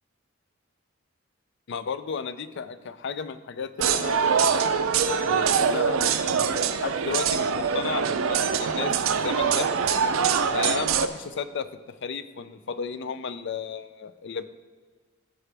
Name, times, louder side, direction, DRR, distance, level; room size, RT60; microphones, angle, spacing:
voice 1, 1.7-4.6 5.3-9.7 10.5-11.7 12.0-14.5, left 6 dB, 60° left, 13 dB, 0.4 m, -33 dB
sound 1, 3.8-11.1, right 6 dB, 80° right, 0.5 m, -24 dB
14.5 x 4.9 x 3.3 m, 1.5 s
head